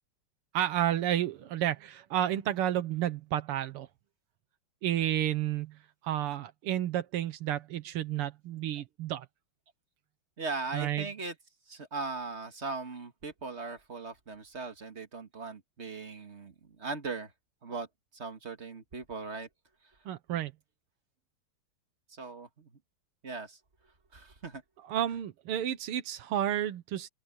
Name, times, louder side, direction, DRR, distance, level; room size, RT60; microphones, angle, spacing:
voice 1, 0.5-3.9 4.8-5.8 6.0-9.3 10.7-11.1 20.1-20.5 24.8-27.1, right 11 dB, 90° right, 2.0 m, -31 dB
voice 2, 10.4-11.4 11.7-17.3 17.6-17.9 18.1-19.5 22.1-22.7 23.2-23.6 24.1-24.6, right 4 dB, 35° right, 1.9 m, -39 dB
open air
omnidirectional pair, 2.4 m